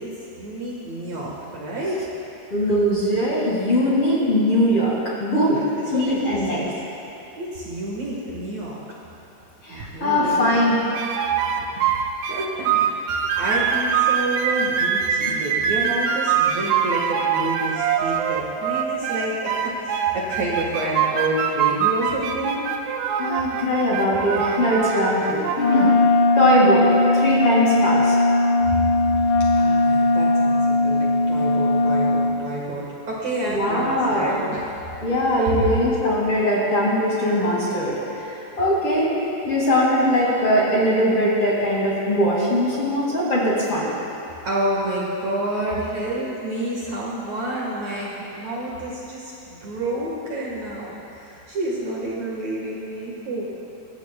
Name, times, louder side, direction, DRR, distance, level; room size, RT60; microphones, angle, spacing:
voice 1, 0.0-2.0 5.4-5.6 5.9-6.7 7.4-8.8 9.8-10.5 11.7-11.8 12.3-13.0 13.4-22.6 29.1-34.8 35.4-35.5 44.4-53.5, right 1 dB, 55° right, -5 dB, 2.3 m, -29 dB
voice 2, 2.5-5.6 5.9-6.6 9.6-10.8 23.2-25.9 26.4-26.9 27.1-28.2 33.5-34.4 35.0-39.1 39.5-43.9, equal, 40° left, -6 dB, 2.6 m, -21 dB
sound 1, 10.9-25.9, right 8 dB, 80° right, 2.4 m, -24 dB
Wind instrument woodwind instrument, 25.6-32.4, left 2 dB, 80° left, 1.6 m, -19 dB
22.5 x 14.5 x 2.3 m, 2.9 s
omnidirectional pair, 4.6 m